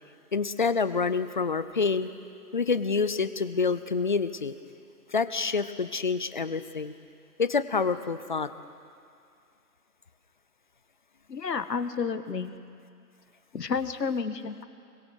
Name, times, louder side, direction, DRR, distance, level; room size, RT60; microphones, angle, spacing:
voice 1, 0.3-2.1 2.5-4.5 5.1-6.9 7.4-8.5, left 5 dB, 30° left, 13 dB, 0.6 m, -27 dB
voice 2, 11.3-12.6 13.5-14.6, left 5 dB, 85° left, 11 dB, 1.6 m, -31 dB
26.0 x 22.5 x 6.4 m, 2.4 s
hypercardioid pair, 155°, 48 cm